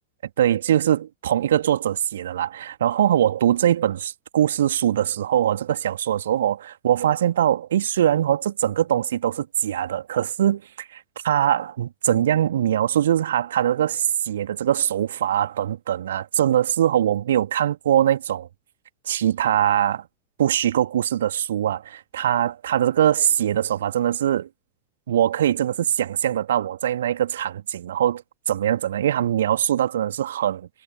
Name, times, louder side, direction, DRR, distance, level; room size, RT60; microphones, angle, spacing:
voice 1, 0.4-18.5 19.1-20.0 20.4-24.5 25.1-30.7, right 11 dB, 60° right, 3.0 m, -22 dB
figure-of-eight pair, 90°, 0 cm